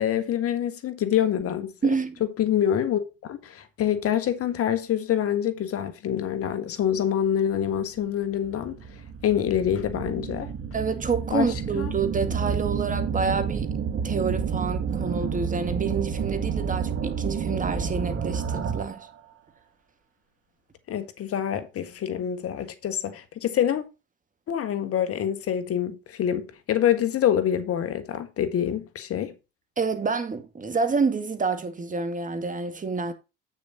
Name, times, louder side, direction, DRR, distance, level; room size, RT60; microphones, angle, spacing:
voice 1, 0.0-1.7 2.4-8.8 9.2-10.5 11.3-11.5 11.7-11.9 20.9-23.8 24.5-29.3, left 10 dB, 50° left, 1.5 m, -26 dB
voice 2, 1.8-2.2 10.7-19.1 29.8-33.1, right 4 dB, 25° right, 2.0 m, -28 dB
sound 1, 7.7-7.8 8.4-19.1, right 6 dB, 45° right, 1.8 m, -30 dB
8.8 x 6.4 x 4.1 m
supercardioid pair, 80°, 29 cm